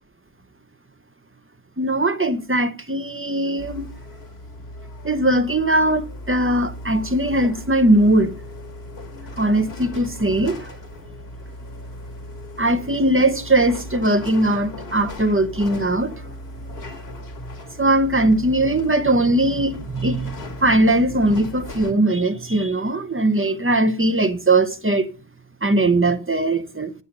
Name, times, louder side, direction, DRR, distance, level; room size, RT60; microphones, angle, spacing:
voice 1, 1.8-3.9 5.0-8.4 9.4-10.8 12.6-16.1 17.8-25.1 25.6-26.9, right 1 dB, 15° right, 0.7 m, -20 dB
sound 1, 3.6-21.9, left 1 dB, 90° left, 1.7 m, -37 dB
11.0 x 8.2 x 5.4 m
omnidirectional pair, 1.0 m